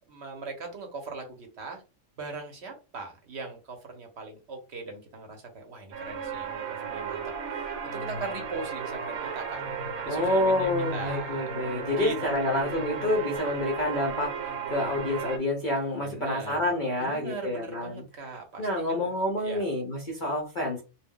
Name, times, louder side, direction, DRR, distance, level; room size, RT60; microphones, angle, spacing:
voice 1, 0.1-1.8 2.2-9.6 10.1-11.4 11.8-12.8 16.0-16.7 17.0-19.1 19.4-19.7, right 3 dB, 60° right, 4 dB, 0.9 m, -40 dB
sound 1, 5.9-15.4, right 5 dB, 85° right, 1.0 m, -34 dB
voice 2, 10.1-18.0 18.6-20.8, left 1 dB, 60° left, -1 dB, 0.5 m, -28 dB
2.3 x 2.1 x 3.5 m, 0.31 s
omnidirectional pair, 1.5 m